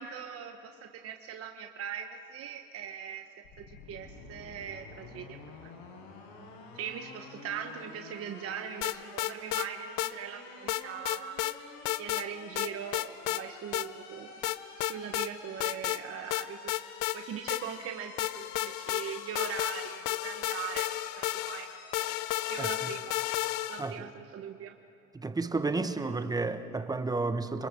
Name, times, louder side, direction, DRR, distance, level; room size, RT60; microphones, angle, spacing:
voice 1, 0.0-3.2 3.6-5.7 6.7-11.4 12.0-14.3 14.8-16.7 17.1-23.2 23.7-24.7, right 8 dB, 40° right, 1.2 m, -41 dB
sound 1, 3.4-22.7, left 3 dB, 85° left, 6.4 m, -49 dB
sound 2, 8.8-9.7 10.0-10.1 10.7-11.5 11.8-12.3 12.6-13.4 13.7-13.9 14.4-15.3 15.6-16.0 16.3-17.9 18.2-23.9, left 18 dB, 65° left, 0.6 m, -32 dB
voice 2, 25.1-27.7, right 3 dB, 10° right, 1.0 m, -31 dB
28.5 x 22.0 x 7.6 m
cardioid pair, 130°, 34 cm